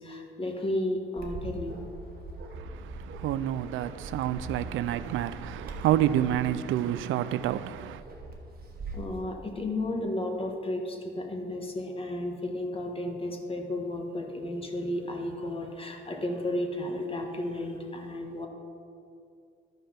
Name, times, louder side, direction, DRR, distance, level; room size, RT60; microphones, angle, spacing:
voice 1, 0.0-1.8 8.9-18.5, left 1 dB, 30° left, 1.5 m, -33 dB
Bark, 1.2-9.2, right 2 dB, 50° right, 1.4 m, -42 dB
voice 2, 2.5-8.0, right 12 dB, 80° right, 0.4 m, -29 dB
12.0 x 5.4 x 5.7 m
cardioid pair, 90°, 20 cm